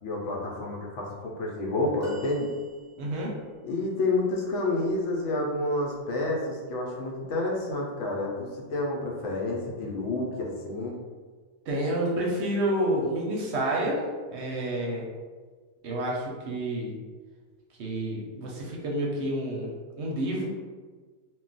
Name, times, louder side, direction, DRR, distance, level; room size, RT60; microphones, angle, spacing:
voice 1, 0.0-2.5 3.6-11.0, left 2 dB, 70° left, -1 dB, 0.9 m, -29 dB
sound 1, 2.0-3.4 5.8-6.0 7.3-7.4, equal, 20° right, 0.5 m, -46 dB
voice 2, 3.0-3.3 11.7-14.0 14.3-15.1 15.8-16.9 17.8-20.5, right 1 dB, 65° right, -2 dB, 0.8 m, -29 dB
2.3 x 2.1 x 3.8 m, 1.5 s
omnidirectional pair, 1.4 m